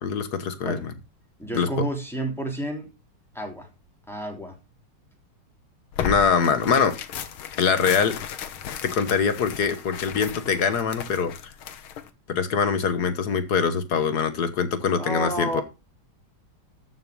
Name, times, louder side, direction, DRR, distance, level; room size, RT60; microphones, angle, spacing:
voice 1, 0.0-0.9 1.5-1.7 6.0-7.0 7.6-8.2 8.8-11.3 12.3-15.6, left 6 dB, 55° left, 1.7 m, -23 dB
voice 2, 1.4-2.9 3.3-3.7 4.1-4.6 15.0-15.6, right 1 dB, ahead, 3.3 m, -30 dB
Tearing, 5.9-12.1, left 9 dB, 80° left, 1.9 m, -35 dB
13.5 x 6.1 x 5.2 m
omnidirectional pair, 2.3 m